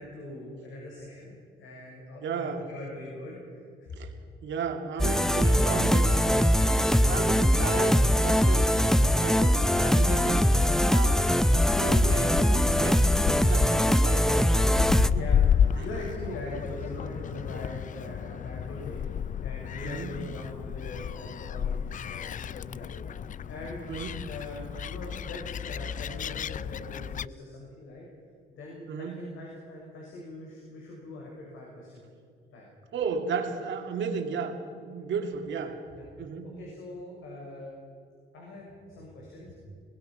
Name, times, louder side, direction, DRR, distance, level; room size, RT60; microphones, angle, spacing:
voice 1, 0.0-1.3 1.6-4.1 6.8-7.2 15.1-19.0 19.4-23.9 24.2-28.0 28.5-32.0 32.5-32.7 35.9-36.1 36.4-37.7 38.3-39.6, left 1 dB, 80° left, -3 dB, 6.1 m, -42 dB
voice 2, 2.2-2.7 4.0-4.1 4.4-6.5 7.1-8.7 9.2-10.4 10.9-11.3 11.8-15.3 15.8-15.9 19.8-20.2 23.9-24.1 28.9-29.3 32.9-34.6 34.8-35.8 36.2-36.5, right 6 dB, 70° right, 3 dB, 2.8 m, -34 dB
sound 1, 5.0-15.1, equal, ahead, 0.7 m, -22 dB
Gull seagull, 11.5-27.3, left 8 dB, 40° left, 0.4 m, -32 dB
23.0 x 19.5 x 5.8 m, 2.3 s
cardioid pair, 90°, 20 cm